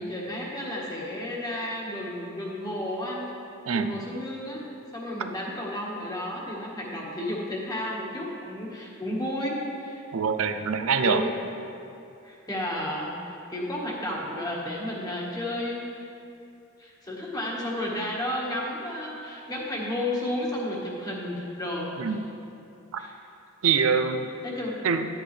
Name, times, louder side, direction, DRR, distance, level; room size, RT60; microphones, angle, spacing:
voice 1, 0.0-3.3 3.7-4.6 4.9-10.0 11.0-11.3 12.2-16.0 16.8-21.9 23.0-23.1 24.4-24.7, left 1 dB, 20° left, -4 dB, 1.5 m, -32 dB
voice 2, 3.7-4.0 10.1-11.3 22.0-22.2 23.6-24.3 24.8-25.1, right 5 dB, 85° right, 8 dB, 0.5 m, -24 dB
10.5 x 10.0 x 3.3 m, 2.7 s
head